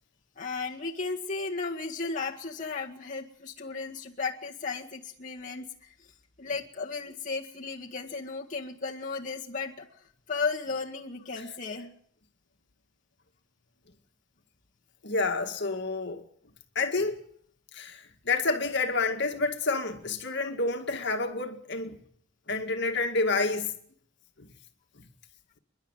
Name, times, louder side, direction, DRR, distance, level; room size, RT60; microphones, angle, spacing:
voice 1, 0.4-5.9 6.4-9.9 10.3-11.9, left 4 dB, 40° left, 1.9 m, -34 dB
voice 2, 15.0-16.2 16.8-17.2 17.7-22.0 22.5-23.8 24.4-24.5 25.0-25.1, left 3 dB, 60° left, 2.1 m, -29 dB
28.5 x 11.5 x 9.1 m
head